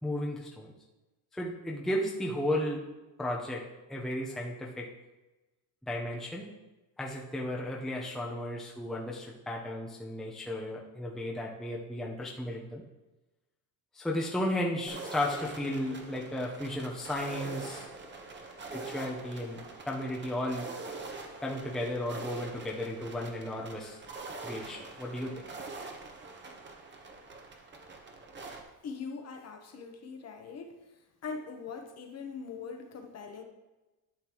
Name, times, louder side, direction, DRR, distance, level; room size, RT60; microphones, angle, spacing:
voice 1, 0.0-0.7 1.3-2.9 3.2-4.9 5.8-6.5 7.0-12.8 13.9-17.9 18.7-20.8 21.4-24.0 24.4-25.5, left 1 dB, ahead, -2 dB, 0.7 m, -34 dB
sound 1, 14.9-28.6, right 3 dB, 25° right, 1.0 m, -44 dB
voice 2, 28.8-30.7 31.2-33.4, left 5 dB, 35° left, 4 dB, 1.1 m, -41 dB
11.5 x 6.7 x 3.0 m, 1.1 s
cardioid pair, 140°, 46 cm